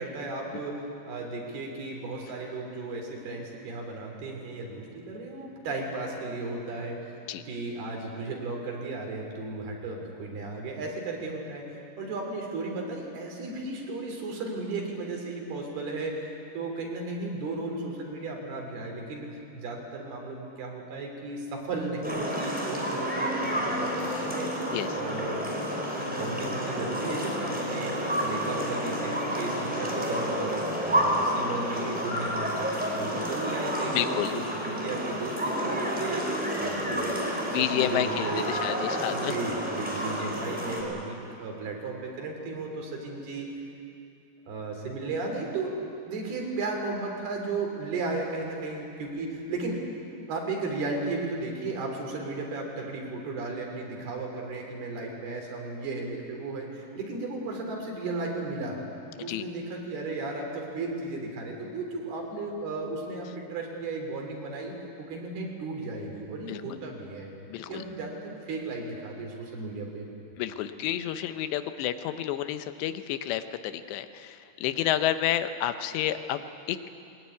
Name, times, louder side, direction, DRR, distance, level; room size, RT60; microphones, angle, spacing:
voice 1, 0.0-7.0 7.5-24.5 24.9-25.4 25.9-27.9 28.2-30.5 30.8-36.2 36.5-37.2 37.5-38.5 39.1-43.5 44.5-45.8 46.1-49.8 50.3-58.8 59.2-67.3 67.6-70.1, right 3 dB, 65° right, 1 dB, 5.3 m, -35 dB
sound 1, 22.0-40.8, equal, ahead, 3.8 m, -30 dB
voice 2, 33.9-34.3 37.5-39.3 59.3-59.4 66.5-66.6 67.5-67.8 70.4-76.4 76.7-76.8, left 12 dB, 90° left, 10 dB, 3.1 m, -30 dB
21.0 x 20.5 x 9.5 m, 2.6 s
omnidirectional pair, 4.9 m